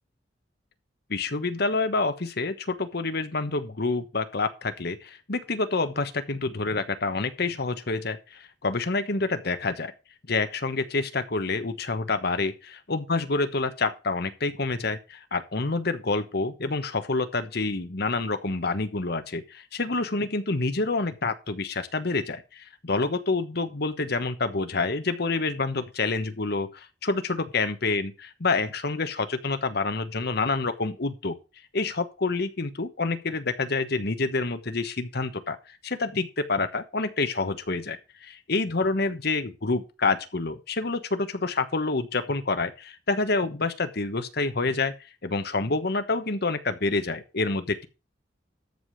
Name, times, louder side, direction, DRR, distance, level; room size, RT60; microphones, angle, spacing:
voice 1, 1.1-9.9 10.3-31.4 31.7-44.9 45.2-47.9, left 3 dB, 60° left, 1.2 m, -28 dB
13.5 x 5.1 x 6.4 m
head